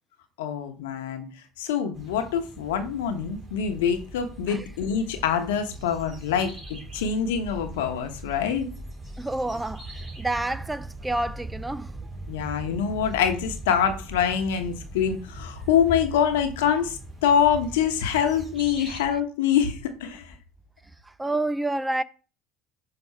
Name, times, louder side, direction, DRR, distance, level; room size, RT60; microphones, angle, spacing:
voice 1, 0.4-1.3 1.6-6.6 6.9-8.7 12.3-20.3, left 8 dB, 85° left, 1.0 m, -25 dB
sound 1, 1.9-19.0, right 2 dB, 25° right, 2.6 m, -41 dB
voice 2, 9.2-11.9 18.8-19.0 21.2-22.0, right 2 dB, 10° right, 0.4 m, -29 dB
6.0 x 3.5 x 5.6 m
supercardioid pair, 85°, 0 cm